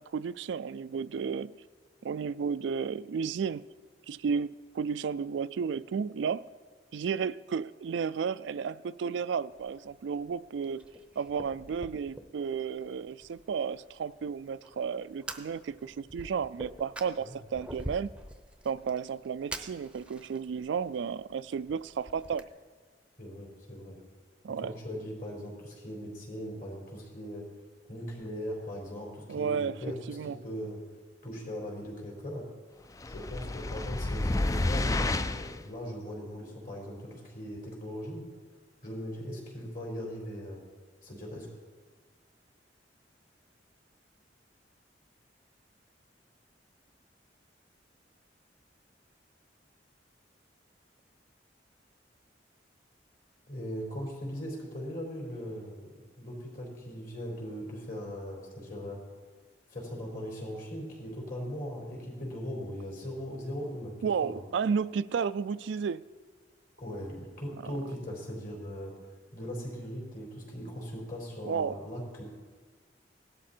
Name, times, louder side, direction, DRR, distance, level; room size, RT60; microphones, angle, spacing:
voice 1, 0.0-1.5 2.0-3.7 4.1-6.4 6.9-10.8 11.2-18.1 18.6-22.4 24.4-24.7 29.3-29.8 30.1-30.4 64.0-66.1 71.4-71.8, right 6 dB, 80° right, 16 dB, 0.3 m, -33 dB
Fire, 9.5-22.4, right 1 dB, 5° right, 0.7 m, -47 dB
voice 2, 23.2-24.0 24.6-27.4 27.9-30.8 31.2-32.5 33.1-38.2 38.8-40.6 41.0-41.5 53.5-59.0 59.7-64.4 66.8-68.9 69.3-72.2, equal, 50° left, -2 dB, 4.5 m, -39 dB
sound 1, 33.0-35.6, left 2 dB, 20° left, 0.4 m, -30 dB
17.0 x 12.5 x 4.4 m, 1.5 s
head